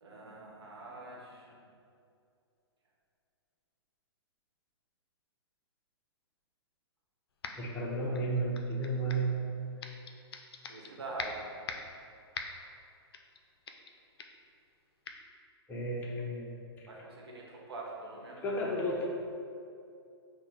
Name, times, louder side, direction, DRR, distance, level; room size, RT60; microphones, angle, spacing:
voice 1, 0.0-1.6 8.0-8.2 10.7-11.4 16.9-18.8, right 2 dB, 70° right, -2 dB, 0.9 m, -45 dB
sound 1, 7.4-7.8 8.1-9.3 9.8-10.9 11.2-12.0 12.3-12.7 13.1-13.4 13.7-13.9 14.2-14.4 15.0-15.2, left 4 dB, 65° left, 0.4 m, -42 dB
voice 2, 7.6-9.4 15.7-16.6 18.4-19.1, right 1 dB, 10° left, -3 dB, 0.5 m, -32 dB
4.5 x 2.1 x 4.1 m, 2.5 s
hypercardioid pair, 125°, 14 cm